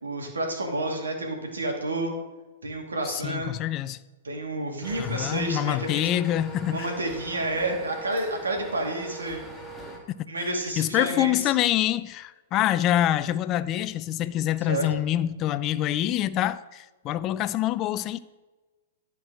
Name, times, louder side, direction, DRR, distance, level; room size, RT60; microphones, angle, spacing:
voice 1, 0.0-2.1 2.6-3.5 4.2-6.2 6.7-9.4 10.3-11.5 14.7-14.9, right 2 dB, 80° right, 2.3 m, -30 dB
voice 2, 3.0-4.0 5.0-6.9 10.4-10.5 10.8-18.2, left 12 dB, 35° left, 0.4 m, -26 dB
sound 1, 4.8-10.0, right 2 dB, 5° left, 2.3 m, -41 dB
11.5 x 4.6 x 6.1 m
figure-of-eight pair, 105°, 0 cm